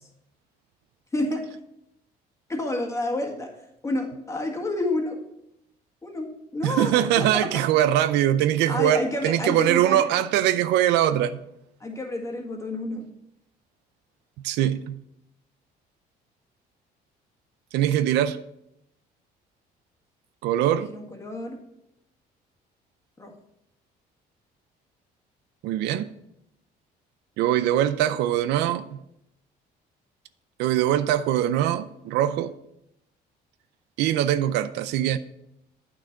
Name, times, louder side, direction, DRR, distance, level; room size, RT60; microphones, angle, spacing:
voice 1, 1.1-1.5 2.5-3.5 3.8-5.2 6.0-7.6 8.7-10.1 11.8-13.1 20.6-21.6 23.2-23.3, left 2 dB, 15° left, 1.7 m, -30 dB
voice 2, 6.6-11.4 14.4-15.0 17.7-18.4 20.4-20.9 25.6-26.1 27.4-29.0 30.6-32.5 34.0-35.2, right 11 dB, 85° right, 0.5 m, -22 dB
8.8 x 6.3 x 4.5 m
cardioid pair, 110°, 17 cm